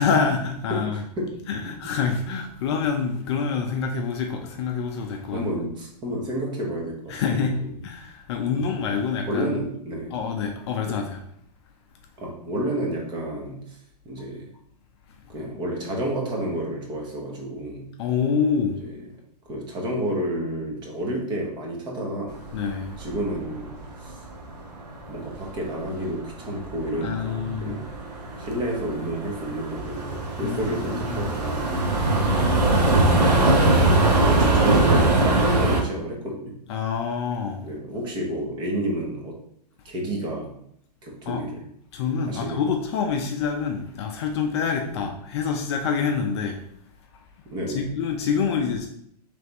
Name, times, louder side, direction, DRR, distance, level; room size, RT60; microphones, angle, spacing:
voice 1, 0.0-1.0 1.5-5.5 7.1-9.6 10.1-11.2 18.0-18.8 22.5-23.0 27.0-27.8 30.4-31.3 32.1-32.5 34.1-34.4 36.7-37.7 41.3-41.4 41.9-46.6 47.7-48.9, left 6 dB, 40° left, 3 dB, 0.5 m, -26 dB
voice 2, 0.7-1.3 5.3-7.1 8.5-8.7 9.3-10.1 10.8-11.0 12.2-13.8 14.0-14.5 15.3-17.9 19.5-22.4 23.0-23.7 24.0-24.2 25.1-27.9 28.4-31.8 34.2-36.6 37.6-39.3 39.8-40.5 41.0-41.6 42.3-42.6 44.9-45.0 47.5-47.9, right 1 dB, 20° right, -1 dB, 0.9 m, -30 dB
sound 1, 22.3-24.6 24.8-35.8, right 2 dB, 75° right, 1.0 m, -22 dB
3.3 x 3.3 x 4.0 m, 0.70 s
hypercardioid pair, 145°, 21 cm